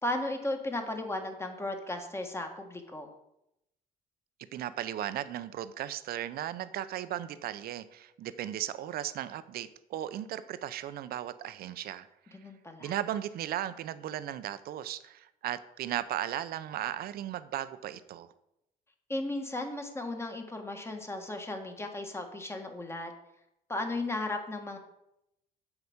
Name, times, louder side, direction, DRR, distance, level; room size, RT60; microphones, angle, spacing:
voice 1, 0.0-3.1 12.3-12.9 19.1-23.1 23.7-24.8, left 2 dB, 15° left, 4 dB, 1.5 m, -35 dB
voice 2, 4.5-12.4 12.8-18.3, right 12 dB, 65° right, 13 dB, 0.6 m, -36 dB
8.0 x 4.9 x 7.1 m, 0.83 s
cardioid pair, 110°, 17 cm